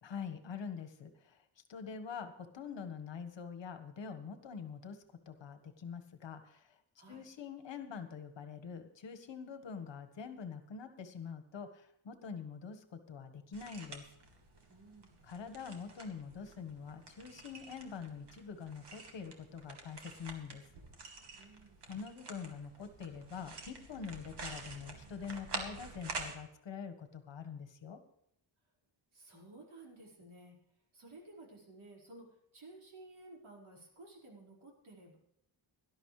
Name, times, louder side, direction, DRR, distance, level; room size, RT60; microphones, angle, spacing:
voice 1, 0.0-6.8 7.1-14.1 15.2-20.7 21.9-28.0, left 6 dB, 60° left, 8 dB, 1.6 m, -45 dB
sound 1, 13.5-26.4, right 3 dB, 55° right, 2.3 m, -48 dB
voice 2, 14.7-15.2 21.4-21.9 29.1-30.6 30.9-35.2, right 2 dB, 75° right, -2 dB, 5.0 m, -55 dB
18.0 x 12.0 x 3.3 m, 0.77 s
wide cardioid pair, 145°, 49 cm